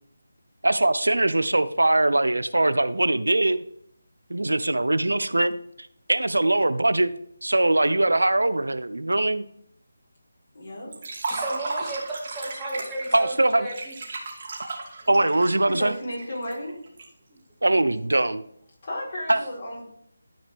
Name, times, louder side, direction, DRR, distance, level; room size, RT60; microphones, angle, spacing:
voice 1, 0.6-3.6 4.3-5.5 6.1-7.1 7.4-9.4 13.1-13.7 15.1-15.9 17.6-18.4 19.3-19.4, right 2 dB, 85° right, 13 dB, 0.6 m, -21 dB
voice 2, 10.5-10.9 15.6-16.8 18.8-19.8, left 1 dB, 45° left, -4 dB, 4.0 m, -34 dB
Liquid, 10.9-17.0, right 3 dB, 40° right, 2.6 m, -35 dB
voice 3, 11.3-13.9, right 2 dB, 5° right, -7 dB, 2.1 m, -33 dB
13.0 x 5.1 x 3.5 m, 0.69 s
figure-of-eight pair, 160°, 0 cm